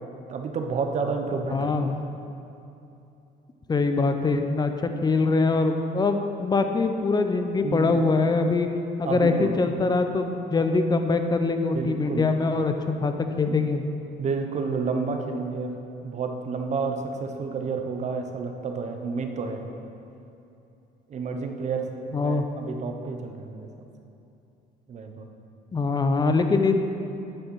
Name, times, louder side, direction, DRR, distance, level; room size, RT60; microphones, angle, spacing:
voice 1, 0.3-1.7 7.6-8.0 9.0-9.5 11.7-12.3 14.2-15.7 16.0-19.6 21.1-23.7 24.9-25.3, right 4 dB, 45° right, 4 dB, 0.9 m, -30 dB
voice 2, 1.5-1.9 3.7-4.7 5.0-8.7 9.0-12.7 13.0-13.9 22.1-22.5 25.7-26.8, left 3 dB, 25° left, 7 dB, 0.7 m, -23 dB
9.0 x 6.8 x 5.5 m, 2.8 s
cardioid pair, 110°, 17 cm